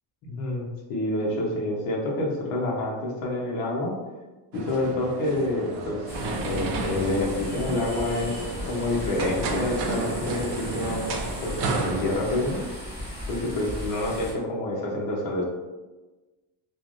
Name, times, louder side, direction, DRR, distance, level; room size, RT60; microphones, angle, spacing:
voice 1, 0.2-4.0 4.5-11.1 11.4-12.6 13.3-15.4, left 1 dB, 50° left, -3 dB, 0.8 m, -28 dB
sound 1, 4.5-12.7, right 3 dB, 60° right, 0.5 m, -32 dB
sound 2, 6.1-14.3, left 1 dB, 10° left, 1.2 m, -37 dB
3.2 x 2.3 x 2.5 m, 1.2 s
cardioid pair, 170°, 46 cm